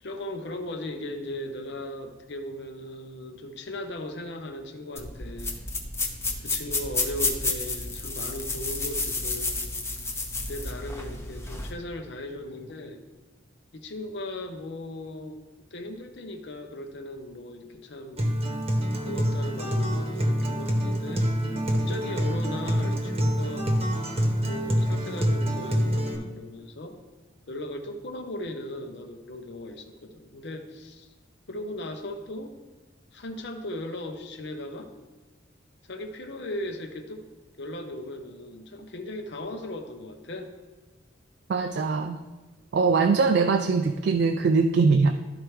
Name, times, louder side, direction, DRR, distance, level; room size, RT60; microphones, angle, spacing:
voice 1, 0.0-5.6 6.4-9.6 10.5-13.0 13.7-15.4 15.7-18.2 19.0-21.3 21.7-23.8 24.4-26.9 27.5-31.1 31.5-32.5 33.1-34.9 35.9-37.3 37.6-40.5, left 1 dB, 65° left, 6 dB, 0.8 m, -37 dB
sound 1, 5.0-11.7, left 3 dB, 15° left, 0.7 m, -31 dB
Acoustic guitar, 18.2-26.2, equal, 30° right, 1.0 m, -26 dB
voice 2, 41.5-42.2 42.7-45.1, right 4 dB, 60° right, 6 dB, 0.3 m, -22 dB
12.5 x 4.5 x 3.2 m, 1.2 s
head